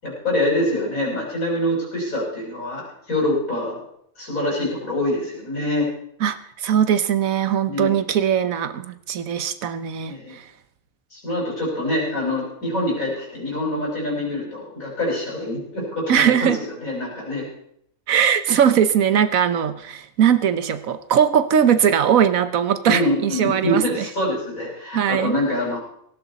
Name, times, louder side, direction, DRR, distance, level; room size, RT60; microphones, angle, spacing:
voice 1, 0.0-3.8 4.2-5.9 7.7-7.9 10.1-10.4 11.1-16.5 16.8-17.5 22.8-25.8, left 1 dB, 75° left, -5 dB, 5.8 m, -25 dB
voice 2, 6.2-10.4 16.1-16.6 18.1-24.0 24.9-25.4, right 8 dB, 75° right, 12 dB, 1.4 m, -20 dB
17.5 x 16.0 x 4.1 m, 0.71 s
omnidirectional pair, 1.4 m